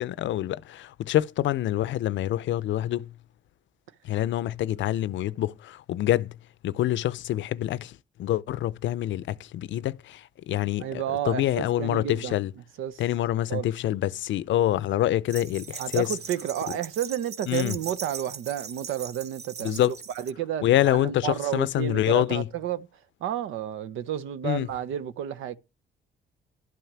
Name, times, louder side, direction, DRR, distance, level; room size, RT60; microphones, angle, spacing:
voice 1, 0.0-3.1 4.0-6.4 6.6-7.9 8.2-12.5 13.0-16.1 17.5-17.8 19.6-19.9 20.6-22.5 24.4-24.7, left 13 dB, 70° left, 0.5 m, -26 dB
voice 2, 10.8-12.4 12.8-13.0 13.5-13.7 15.8-22.9 23.2-25.6, right 10 dB, 85° right, 0.7 m, -31 dB
sound 1, 15.3-20.3, right 6 dB, 55° right, 0.8 m, -40 dB
11.5 x 5.7 x 7.3 m
cardioid pair, 90°, 20 cm